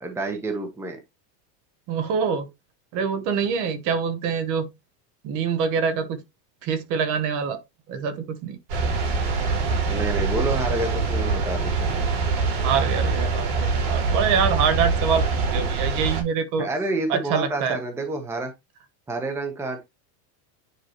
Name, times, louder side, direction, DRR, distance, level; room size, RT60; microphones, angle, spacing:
voice 1, 0.0-1.0 9.9-11.9 16.6-18.5 19.1-19.8, right 2 dB, 5° right, 0.9 m, -29 dB
voice 2, 1.9-2.5 2.9-4.7 5.2-6.2 6.6-7.6 7.9-8.6 12.6-16.7 17.1-17.8, right 6 dB, 40° right, 1.1 m, -25 dB
sound 1, 8.7-16.2, right 4 dB, 75° right, 4.8 m, -24 dB
9.6 x 4.7 x 3.0 m
supercardioid pair, 165°, 47 cm